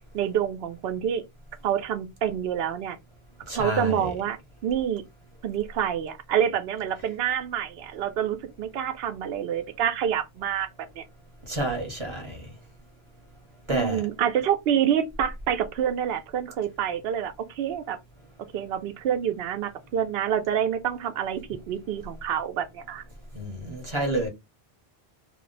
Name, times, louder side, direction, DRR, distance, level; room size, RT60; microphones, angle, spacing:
voice 1, 0.1-1.2 1.6-3.0 3.5-5.0 5.4-10.7 11.0-11.1 13.7-18.0 18.5-23.0, right 9 dB, 75° right, 0.8 m, -27 dB
voice 2, 3.5-4.1 11.5-12.4 13.7-14.0 23.3-24.3, right 1 dB, 30° right, 0.9 m, -29 dB
2.3 x 2.1 x 3.8 m
omnidirectional pair, 1.1 m